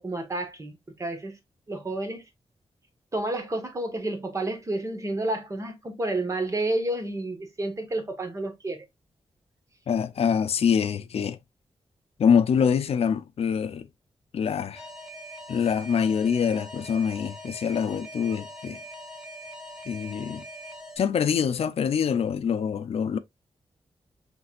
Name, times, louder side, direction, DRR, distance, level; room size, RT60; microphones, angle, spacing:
voice 1, 0.0-1.4 1.7-2.2 3.1-8.8, right 2 dB, 30° right, 1.1 m, -30 dB
voice 2, 9.9-11.4 12.2-13.9 14.3-14.8 15.5-18.8 19.9-20.4 21.0-23.2, left 7 dB, 75° left, 0.4 m, -25 dB
Alarm, 14.8-21.0, equal, 5° right, 0.7 m, -42 dB
5.9 x 3.3 x 2.4 m
wide cardioid pair, 135°, 11 cm